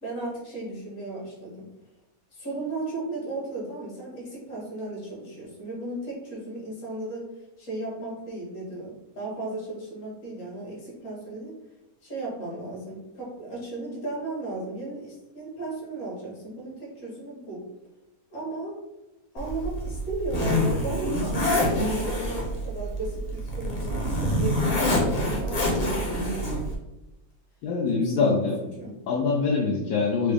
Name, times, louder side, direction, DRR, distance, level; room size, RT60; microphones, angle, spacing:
voice 1, 0.0-1.7 2.3-7.3 7.6-11.5 12.0-17.6 18.3-18.8 19.3-26.6 27.9-29.0, right 2 dB, 60° left, -4 dB, 1.6 m, -35 dB
Zipper (clothing), 19.4-26.7, left 1 dB, 35° left, 0.7 m, -26 dB
voice 2, 27.6-28.6 29.1-30.3, left 4 dB, 80° left, -2 dB, 1.1 m, -24 dB
4.5 x 2.0 x 3.3 m, 0.97 s
omnidirectional pair, 1.5 m